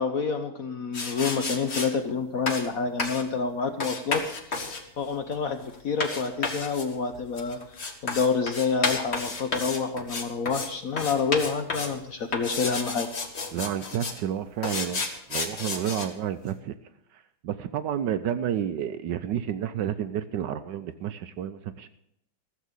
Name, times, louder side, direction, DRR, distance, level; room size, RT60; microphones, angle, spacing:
voice 1, 0.0-4.2 5.0-13.1, left 5 dB, 55° left, 8 dB, 1.0 m, -28 dB
sound 1, 0.9-1.9 2.5-2.7 3.0-3.3 3.8-10.7 11.0-12.0 12.3-14.2 14.6-16.1, left 3 dB, 35° left, 1.4 m, -31 dB
voice 2, 13.5-15.0 15.3-16.8 17.1-21.9, right 9 dB, 70° right, 11 dB, 1.2 m, -30 dB
14.5 x 7.2 x 8.2 m, 0.75 s
omnidirectional pair, 2.2 m